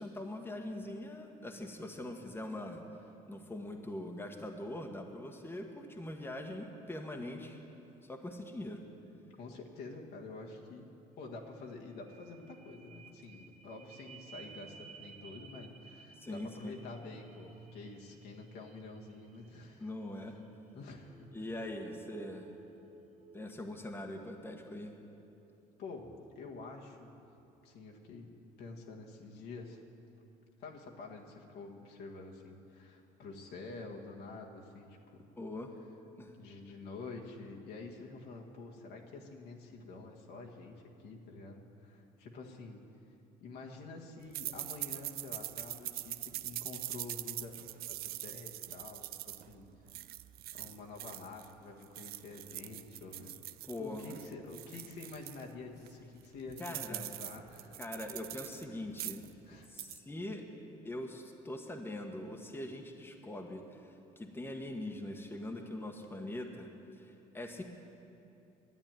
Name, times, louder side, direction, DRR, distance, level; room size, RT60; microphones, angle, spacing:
voice 1, 0.0-2.8 3.3-7.6 8.0-8.8 16.2-16.7 19.8-20.3 21.3-22.5 23.3-24.9 35.4-35.7 36.2-36.3 53.6-54.1 56.6-57.1 57.8-59.2 59.7-60.4 60.8-63.8 64.2-66.7 67.0-67.6, left 1 dB, 10° left, 2 dB, 1.3 m, -42 dB
voice 2, 9.4-19.9 20.7-21.3 25.8-27.2 27.6-28.3 28.6-29.8 30.6-35.2 36.4-42.9 43.4-49.7 50.5-53.4 53.8-57.8 59.4-59.8, left 3 dB, 65° left, 0 dB, 1.7 m, -48 dB
sound 1, 11.6-27.5 28.0-28.1, right 4 dB, 40° right, 1.3 m, -56 dB
sound 2, 44.3-51.5 51.8-55.4 55.9-56.0 56.2-58.6 58.9-59.3 59.6-60.0, right 15 dB, 60° right, 0.4 m, -43 dB
11.0 x 8.8 x 9.0 m, 2.7 s
supercardioid pair, 75°, 18 cm